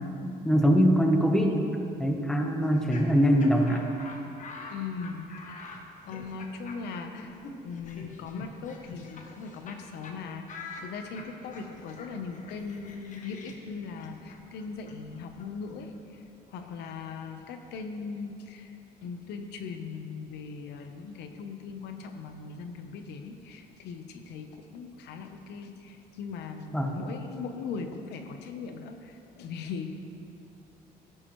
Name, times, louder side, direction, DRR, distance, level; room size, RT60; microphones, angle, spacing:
voice 1, 0.2-1.7 2.0-3.9 26.7-27.0, equal, 5° left, 2 dB, 1.0 m, -23 dB
Laughter, 2.6-9.8 10.0-10.2 10.5-16.2, left 3 dB, 50° left, 1.3 m, -46 dB
voice 2, 4.7-5.7 6.0-7.3 7.6-29.9, left 5 dB, 80° left, 6 dB, 0.9 m, -39 dB
13.5 x 11.0 x 3.1 m, 2.7 s
cardioid pair, 110°, 17 cm